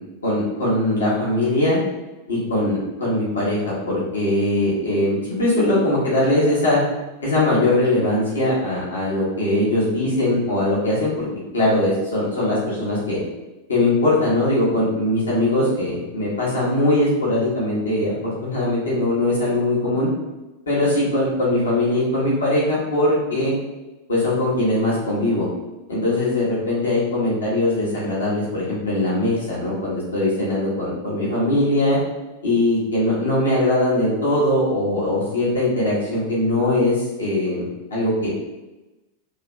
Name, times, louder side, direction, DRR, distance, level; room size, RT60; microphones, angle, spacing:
voice 1, 0.2-1.8 2.3-6.8 7.2-11.3 11.5-13.2 13.7-20.1 20.7-23.5 24.1-25.5 25.9-32.0 32.4-38.3, left 1 dB, 70° left, -7 dB, 1.4 m, -21 dB
3.1 x 2.9 x 3.3 m, 1.1 s
figure-of-eight pair, 90°, 0 cm